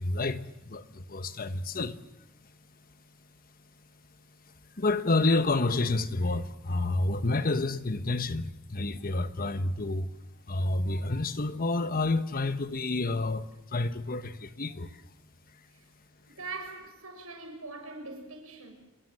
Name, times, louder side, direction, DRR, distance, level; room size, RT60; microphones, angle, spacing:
voice 1, 0.0-2.0 4.8-10.1 10.5-13.5 13.7-15.0, left 2 dB, 45° left, 1.2 m, -29 dB
voice 2, 16.3-18.7, right 3 dB, 85° right, 6.5 m, -42 dB
28.5 x 21.5 x 7.7 m
head